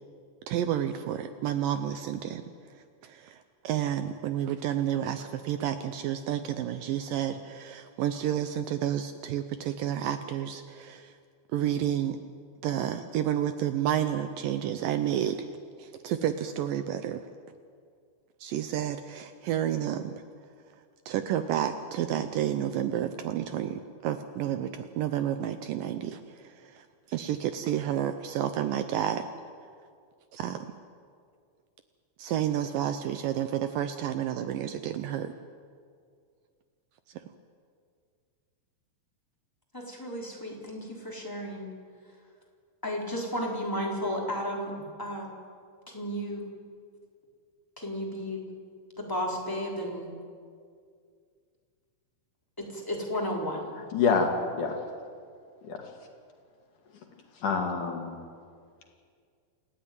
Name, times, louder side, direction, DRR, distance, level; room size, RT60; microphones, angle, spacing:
voice 1, 0.5-2.4 2.8-11.1 11.5-12.2 12.6-15.5 15.8-17.2 18.4-20.2 21.1-29.3 30.3-30.7 32.2-35.3, right 10 dB, 75° right, 9 dB, 2.2 m, -30 dB
voice 2, 39.7-41.7 42.8-45.3 45.9-46.5 47.8-48.4 49.0-50.1 52.6-53.8, equal, 5° left, -3 dB, 3.6 m, -33 dB
voice 3, 53.9-54.8 55.6-55.9 57.4-58.2, left 5 dB, 60° left, 3 dB, 3.2 m, -27 dB
28.5 x 13.5 x 9.4 m, 2.2 s
omnidirectional pair, 4.4 m